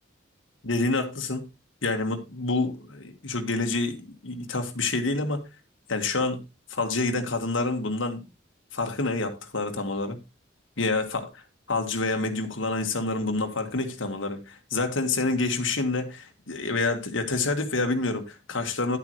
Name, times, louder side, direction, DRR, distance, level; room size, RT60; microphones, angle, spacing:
voice 1, 0.6-1.5 1.8-5.4 5.9-6.4 6.7-8.2 8.7-10.2 10.8-11.3 11.7-19.0, left 3 dB, 85° left, 1.6 m, -27 dB
10.5 x 8.3 x 3.1 m
head